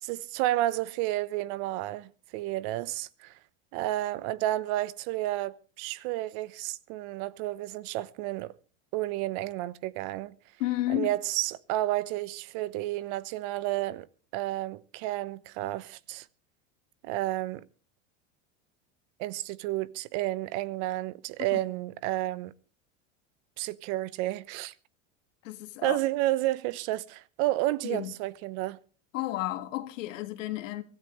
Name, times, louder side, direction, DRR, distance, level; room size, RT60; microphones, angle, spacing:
voice 1, 0.0-3.3 3.7-8.5 8.9-10.3 10.9-14.1 14.3-16.3 17.0-17.7 19.2-22.5 23.6-24.7 25.8-28.8, right 16 dB, 60° right, 1.0 m, -31 dB
voice 2, 10.6-11.1 21.5-21.6 25.4-26.0 27.8-28.1 29.1-30.8, left 16 dB, 80° left, 1.8 m, -32 dB
24.5 x 13.5 x 3.2 m
hypercardioid pair, 100°, 38 cm